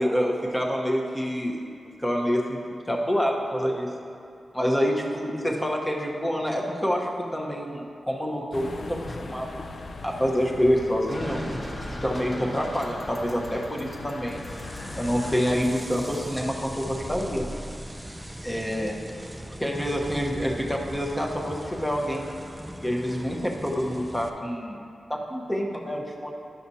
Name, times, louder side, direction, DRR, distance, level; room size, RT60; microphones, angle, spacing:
voice 1, 0.0-1.6 2.0-2.6 2.8-3.9 4.5-9.5 10.0-11.4 12.0-14.4 15.0-17.4 18.4-19.0 19.6-22.3 22.8-24.8 25.1-26.3, equal, 10° left, -1 dB, 0.9 m, -27 dB
sound 1, 8.5-15.6, left 3 dB, 50° left, 0.4 m, -40 dB
sound 2, 11.1-16.5, equal, 25° left, 1.2 m, -40 dB
sound 3, 14.3-24.3, equal, 10° right, 0.5 m, -39 dB
11.0 x 5.9 x 2.7 m, 2.5 s
wide cardioid pair, 95°, 0 cm